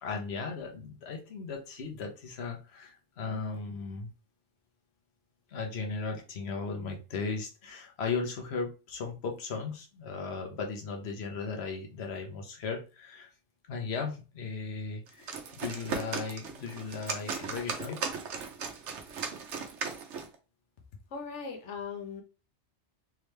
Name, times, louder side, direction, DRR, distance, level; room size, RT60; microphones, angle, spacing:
voice 1, 0.0-4.1 5.5-13.3 13.7-18.1, left 4 dB, 65° left, 1.2 m, -36 dB
sound 1, 15.1-20.4, right 5 dB, 90° right, 1.1 m, -37 dB
voice 2, 21.1-22.2, left 5 dB, 90° left, 1.1 m, -39 dB
3.6 x 3.2 x 3.2 m
omnidirectional pair, 1.2 m